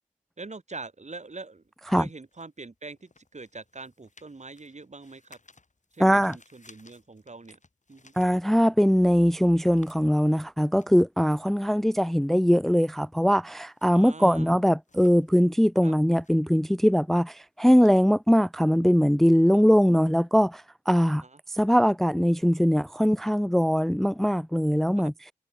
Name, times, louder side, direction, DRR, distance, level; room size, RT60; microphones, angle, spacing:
voice 1, 0.4-5.4 5.9-7.6 7.9-8.1 13.9-14.6 15.8-15.9 19.5-19.6 21.2-21.4 24.9-25.1, right 3 dB, 55° right, 2.8 m, -43 dB
sound 1, 1.1-8.9 9.2-19.3, left 3 dB, 55° left, 7.1 m, -61 dB
voice 2, 6.0-6.4 8.2-21.2 21.5-25.1, equal, ahead, 0.4 m, -21 dB
cardioid pair, 40°, 14 cm